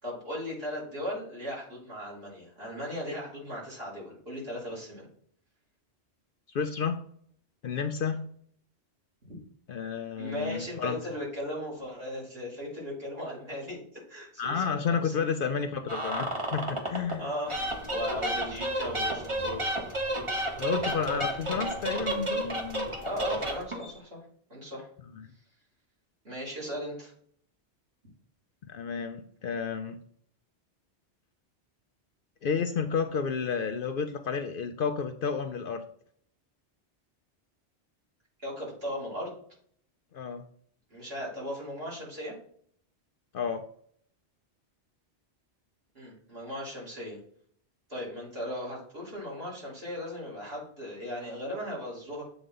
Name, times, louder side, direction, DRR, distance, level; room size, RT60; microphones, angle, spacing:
voice 1, 0.0-5.1 9.3-9.4 10.1-15.1 17.2-17.6 17.9-19.6 23.0-24.2 24.5-24.9 26.2-27.1 38.4-39.3 40.9-42.3 45.9-47.2 47.9-52.2, equal, 60° right, -6 dB, 3.3 m, -37 dB
voice 2, 6.5-7.0 7.6-8.2 9.7-11.0 14.4-17.3 20.6-22.9 28.6-30.0 32.4-35.8 40.1-40.4 43.3-43.6, left 6 dB, 60° left, 7 dB, 0.6 m, -31 dB
sound 1, 15.9-17.2 17.5-23.9, right 1 dB, 30° right, 1.1 m, -31 dB
7.8 x 3.9 x 3.8 m, 0.63 s
omnidirectional pair, 1.2 m